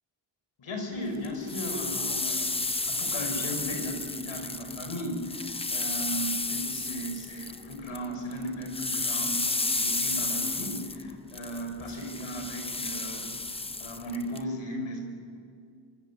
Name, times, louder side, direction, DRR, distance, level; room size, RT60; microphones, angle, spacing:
voice 1, 0.6-2.5 2.8-13.4 13.8-15.0, equal, 85° left, 4 dB, 5.7 m, -36 dB
sound 1, 1.2-8.1 8.3-14.4, left 3 dB, 10° left, 0.6 m, -32 dB
26.5 x 25.0 x 8.5 m, 2.3 s
wide cardioid pair, 165°, 47 cm